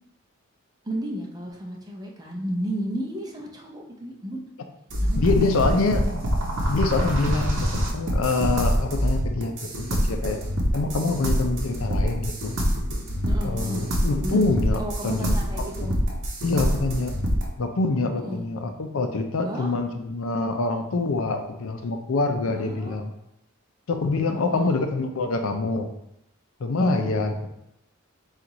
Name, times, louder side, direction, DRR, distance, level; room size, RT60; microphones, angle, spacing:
voice 1, 0.8-4.4 5.0-5.7 13.2-13.8 14.2-14.5 14.8-15.9 18.1-18.5 19.4-19.7 22.5-23.0 24.3-24.8 26.8-27.1, right 1 dB, 20° right, -1 dB, 0.6 m, -33 dB
sound 1, 4.9-17.5, equal, 60° right, 0.8 m, -25 dB
voice 2, 5.2-6.0 6.7-9.5 9.8-10.4 10.7-12.5 13.4-15.9 16.4-17.1 17.6-23.1 23.9-25.9 26.6-27.5, left 3 dB, 70° left, 5 dB, 0.5 m, -25 dB
4.5 x 2.5 x 3.9 m, 0.81 s
head